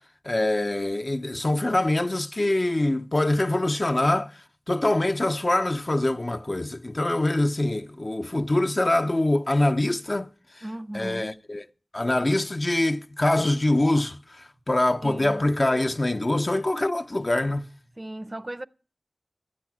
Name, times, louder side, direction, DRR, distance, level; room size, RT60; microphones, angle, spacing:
voice 1, 0.2-10.6 10.9-11.6 11.9-17.7, left 1 dB, 40° left, 0.6 m, -24 dB
voice 2, 10.6-11.2 15.0-15.4 18.0-18.6, right 1 dB, 30° right, 0.5 m, -36 dB
13.5 x 9.2 x 6.0 m
wide cardioid pair, 50°, 0 cm